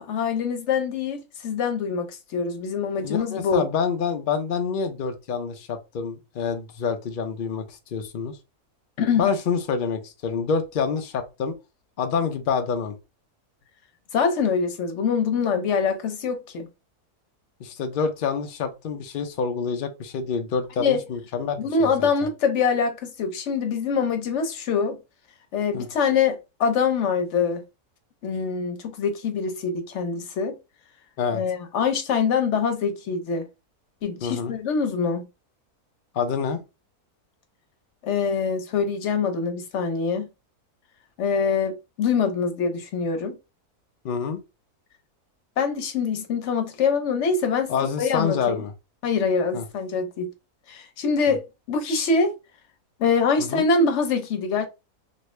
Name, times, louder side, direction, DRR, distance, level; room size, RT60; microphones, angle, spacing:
voice 1, 0.0-3.6 9.0-9.3 14.1-16.7 20.8-21.0 21.6-25.0 25.5-27.6 28.2-30.5 31.3-33.5 34.0-35.2 38.0-40.3 41.2-43.4 45.6-47.7 48.0-48.6 49.0-50.3 50.7-51.4 51.7-52.3 53.0-54.7, left 5 dB, 60° left, 0.9 m, -24 dB
voice 2, 3.0-8.4 9.2-11.5 12.0-12.9 17.6-22.1 25.7-25.9 31.2-31.4 34.2-34.5 36.1-36.6 44.0-44.4 47.7-48.7 49.5-49.6 51.3-51.4 53.4-53.7, left 6 dB, 90° left, 0.4 m, -27 dB
3.0 x 2.7 x 3.1 m
omnidirectional pair, 1.6 m